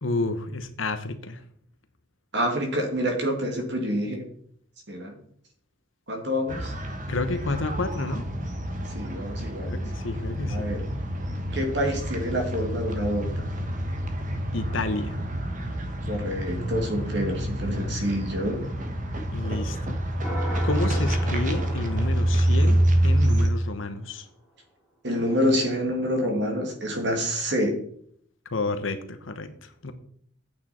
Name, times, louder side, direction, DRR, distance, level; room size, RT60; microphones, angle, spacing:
voice 1, 0.0-1.4 7.1-8.3 9.7-10.7 14.5-15.2 19.3-20.0 20.6-24.3 28.5-29.9, left 2 dB, 80° left, 9 dB, 1.1 m, -30 dB
voice 2, 2.3-4.2 4.9-5.2 6.1-6.7 8.9-9.7 10.5-10.8 11.5-13.3 16.1-18.6 25.0-27.8, equal, 60° right, 2 dB, 2.3 m, -27 dB
sound 1, 6.5-23.5, right 1 dB, 40° right, 1.2 m, -27 dB
sound 2, 20.2-23.6, right 1 dB, 5° right, 3.0 m, -38 dB
8.8 x 8.7 x 4.3 m, 0.63 s
head